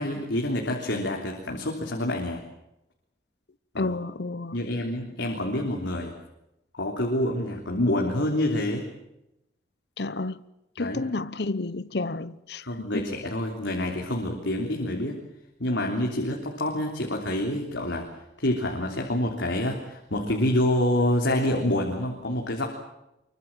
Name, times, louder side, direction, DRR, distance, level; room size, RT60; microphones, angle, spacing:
voice 1, 0.0-2.4 3.7-4.0 4.5-6.1 6.7-8.9 10.8-11.0 12.6-15.2 15.6-18.1 18.4-22.7, left 1 dB, 80° left, 3.5 m, -27 dB
voice 2, 3.8-4.6 10.0-10.4 10.8-13.0, left 3 dB, 60° left, 0.9 m, -31 dB
24.5 x 24.0 x 7.5 m
head